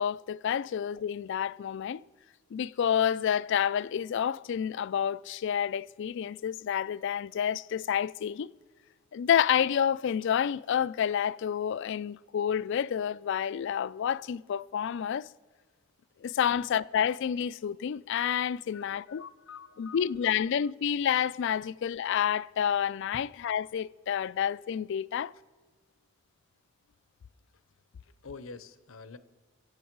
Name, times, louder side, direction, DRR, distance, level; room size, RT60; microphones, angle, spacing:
voice 1, 0.0-2.0 2.5-8.5 9.1-15.3 16.2-19.2 19.8-25.3, left 8 dB, 60° left, 0.3 m, -29 dB
voice 2, 18.6-20.7 23.1-23.2 28.0-29.2, left 5 dB, 80° left, 0.8 m, -48 dB
23.0 x 8.2 x 4.6 m
head